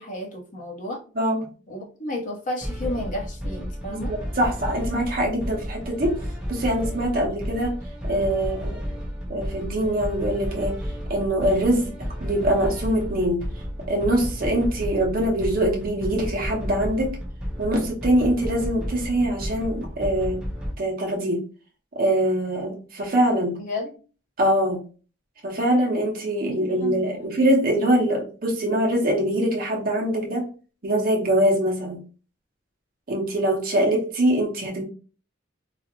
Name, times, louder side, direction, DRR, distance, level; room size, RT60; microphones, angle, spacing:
voice 1, 0.0-1.0 1.7-4.1 23.6-23.9 26.5-27.3, left 1 dB, 40° left, -1 dB, 0.7 m, -32 dB
sound 1, 2.6-20.7, equal, 5° right, 0.4 m, -32 dB
voice 2, 3.9-6.1 6.5-7.7 8.0-8.8 9.3-10.8 11.1-11.9 12.2-13.4 13.9-17.2 17.6-20.4 20.8-21.4 22.0-23.6 24.4-24.8 25.4-30.5 30.8-32.0 33.1-34.8, right 1 dB, 45° right, 0 dB, 0.6 m, -23 dB
2.4 x 2.0 x 2.8 m, 0.38 s
head